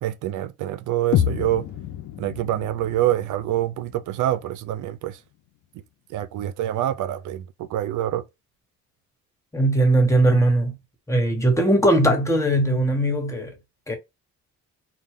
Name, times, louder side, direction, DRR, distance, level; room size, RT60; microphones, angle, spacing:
voice 1, 0.0-1.6 2.2-5.2 6.1-8.2, right 13 dB, 80° right, 0.5 m, -26 dB
sound 1, 1.1-5.1, left 10 dB, 70° left, 0.6 m, -29 dB
voice 2, 9.5-10.7 11.1-13.5 13.9-14.0, right 1 dB, 10° left, 1.4 m, -19 dB
4.5 x 2.2 x 3.6 m
cardioid pair, 90°, 30 cm